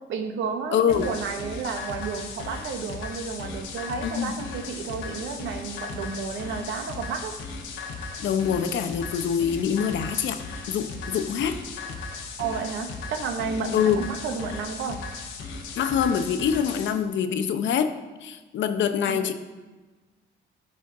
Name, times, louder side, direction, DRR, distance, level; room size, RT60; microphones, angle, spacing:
voice 1, 0.1-7.4 12.4-15.0 19.0-19.3, right 5 dB, 75° right, 5 dB, 0.9 m, -32 dB
voice 2, 0.7-1.1 4.0-4.3 8.2-10.4 10.7-11.6 13.7-14.0 15.8-17.9 18.2-19.3, left 8 dB, 70° left, 9 dB, 0.7 m, -25 dB
sound 1, 0.9-16.9, left 4 dB, 85° left, 1.1 m, -37 dB
12.5 x 4.5 x 3.7 m, 1.2 s
cardioid pair, 90°, 20 cm